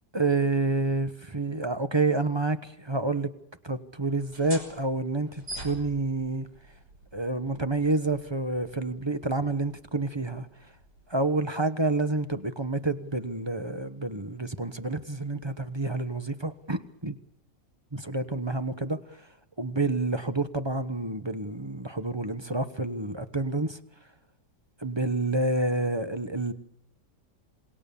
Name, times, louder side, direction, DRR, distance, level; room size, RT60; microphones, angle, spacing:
voice 1, 0.1-3.3 3.6-6.5 7.1-10.5 11.1-17.1 17.9-19.0 19.6-23.8 24.8-26.5, right 2 dB, 20° right, 0.9 m, -28 dB
sound 1, 4.2-11.4, right 1 dB, 65° right, 6.4 m, -46 dB
27.5 x 20.5 x 7.0 m
omnidirectional pair, 1.9 m